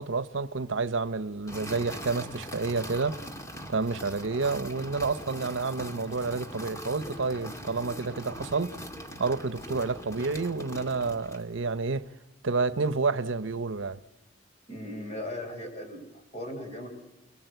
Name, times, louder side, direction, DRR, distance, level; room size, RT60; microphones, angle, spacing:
voice 1, 0.0-3.2 3.7-8.8 9.2-12.1 12.4-14.0, right 4 dB, 80° right, 0.9 m, -29 dB
sound 1, 1.5-11.5, equal, 15° left, 2.1 m, -41 dB
voice 2, 14.7-16.9, left 1 dB, 35° left, 5.3 m, -38 dB
29.0 x 20.5 x 8.0 m
head